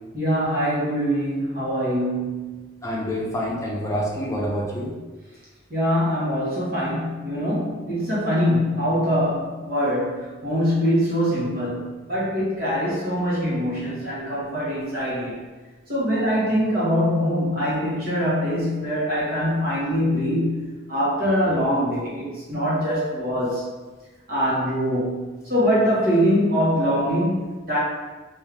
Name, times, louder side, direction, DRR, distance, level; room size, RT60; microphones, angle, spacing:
voice 1, 0.1-2.9 5.7-15.3 15.9-23.7 24.3-27.8, equal, 50° right, -9 dB, 1.2 m, -23 dB
voice 2, 2.8-4.9, equal, 15° left, -4 dB, 0.7 m, -27 dB
3.5 x 2.6 x 3.4 m, 1.3 s
head